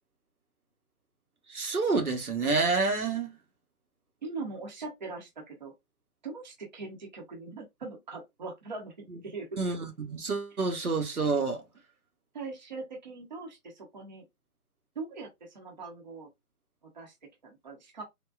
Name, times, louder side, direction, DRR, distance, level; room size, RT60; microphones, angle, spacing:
voice 1, 1.5-3.3 9.6-11.6, right 4 dB, 70° right, 1.0 m, -28 dB
voice 2, 4.2-5.7 6.2-9.6 12.3-14.2 15.0-16.3 16.9-17.1 17.4-18.0, right 3 dB, 30° right, 0.7 m, -41 dB
3.6 x 2.2 x 2.3 m
figure-of-eight pair, 140°, 46 cm